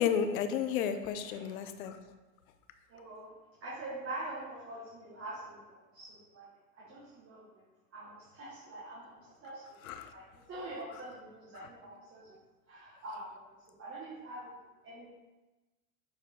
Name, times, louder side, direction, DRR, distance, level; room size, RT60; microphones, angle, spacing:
voice 1, 0.0-2.0 9.8-10.1 11.5-11.7, left 8 dB, 75° left, 9 dB, 0.8 m, -32 dB
voice 2, 1.3-1.6 2.9-3.3 3.6-6.5 6.8-7.6 7.9-12.4 12.7-13.3 13.8-14.5 14.8-15.1, right 2 dB, 30° right, -7 dB, 1.8 m, -45 dB
7.0 x 4.3 x 3.9 m, 1.2 s
supercardioid pair, 115°, 42 cm